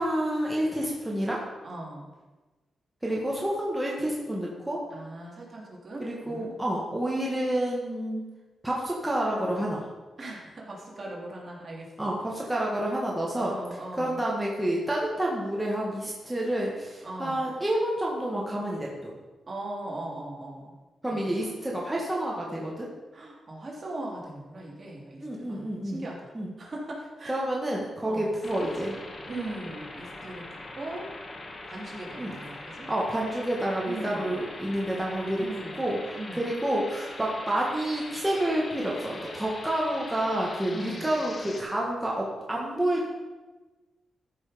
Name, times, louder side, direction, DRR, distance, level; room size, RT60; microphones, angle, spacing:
voice 1, 0.0-1.4 3.0-4.8 6.0-8.2 8.6-9.8 12.0-13.5 14.0-19.1 21.0-22.9 25.2-26.1 26.3-26.5 27.3-29.0 32.2-32.3 32.9-35.5 35.8-43.1, right 1 dB, 10° right, -4 dB, 1.9 m, -29 dB
voice 2, 1.6-2.1 4.9-6.5 10.2-12.1 13.3-14.2 17.0-17.5 19.5-20.7 21.1-21.5 23.1-26.3 26.6-27.4 28.1-28.4 29.3-30.5 30.7-31.1 31.7-32.9 33.8-34.4 35.4-35.8 36.1-36.5 40.7-41.1, right 1 dB, 40° right, -3 dB, 3.1 m, -39 dB
sound 1, 28.4-41.6, left 2 dB, 40° left, 1.8 m, -42 dB
13.5 x 6.4 x 5.2 m, 1.2 s
cardioid pair, 95°, 0 cm